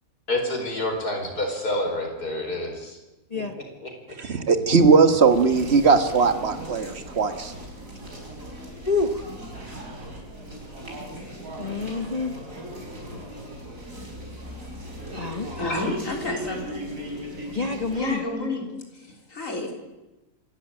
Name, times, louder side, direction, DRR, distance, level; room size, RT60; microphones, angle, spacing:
voice 1, 0.3-3.0 3.3-3.9, left 1 dB, 85° left, 3 dB, 5.3 m, -28 dB
voice 2, 4.2-7.5, right 4 dB, 45° right, 9 dB, 1.7 m, -19 dB
sound 1, 5.2-18.0, equal, 60° right, 5.3 m, -38 dB
voice 3, 8.9-9.2 11.6-12.3 15.2-15.5 17.5-18.2, left 3 dB, 30° left, 6 dB, 1.0 m, -27 dB
voice 4, 15.4-16.9 17.9-19.7, left 2 dB, 55° left, 2 dB, 3.9 m, -30 dB
26.5 x 13.0 x 8.9 m, 1.1 s
omnidirectional pair, 1.6 m